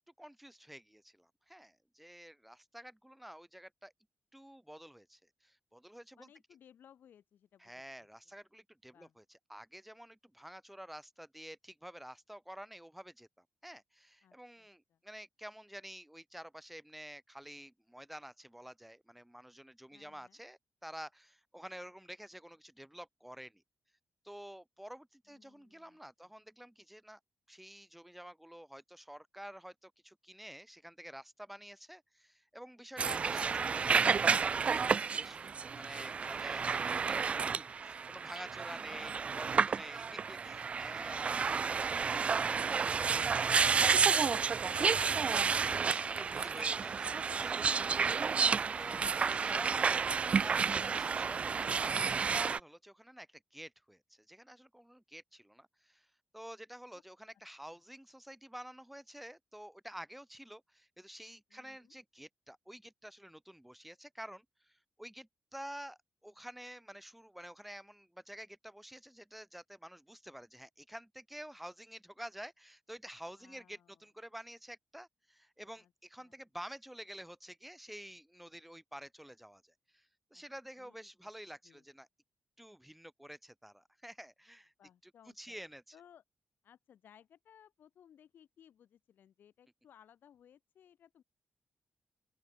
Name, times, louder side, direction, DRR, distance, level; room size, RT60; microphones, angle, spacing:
voice 1, 0.2-3.9 4.3-6.3 7.6-13.3 13.6-23.6 24.2-27.2 27.5-41.3 45.9-47.9 48.8-50.1 50.4-56.1 56.3-82.1 82.6-84.7 85.0-85.1 85.4-86.0, equal, 5° right, 1.2 m, -50 dB
voice 2, 6.1-7.7 8.0-8.1 8.9-9.1 14.2-15.0 19.9-20.4 25.3-26.3 38.9-39.4 40.9-47.3 56.9-57.0 57.7-57.8 61.5-61.9 73.4-74.0 75.8-75.9 76.2-76.4 80.3-80.4 80.8-81.3 81.6-81.8 84.8-85.5 85.9-86.2 86.6-91.2, left 9 dB, 75° left, 6.0 m, -62 dB
sound 1, 33.0-52.6, right 5 dB, 40° right, 0.4 m, -31 dB
open air
wide cardioid pair, 150°, 3 cm